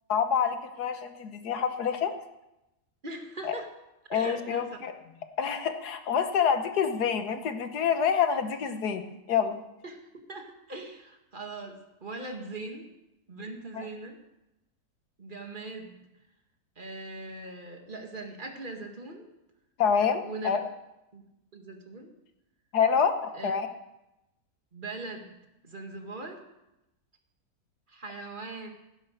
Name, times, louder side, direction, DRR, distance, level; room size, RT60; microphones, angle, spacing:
voice 1, 0.1-2.1 3.4-3.6 4.1-4.9 5.4-9.6 13.7-13.9 19.8-20.6 22.7-23.7, left 7 dB, 90° left, 8 dB, 1.7 m, -27 dB
voice 2, 3.0-3.7 4.1-4.7 9.8-12.9 13.3-14.2 15.2-16.0 16.8-19.3 20.2-20.6 21.1-21.3 21.5-22.1 23.3-23.5 24.7-25.3 25.6-26.4 27.9-28.7, right 2 dB, 30° right, 3 dB, 2.0 m, -40 dB
16.0 x 10.5 x 6.5 m, 0.92 s
omnidirectional pair, 1.6 m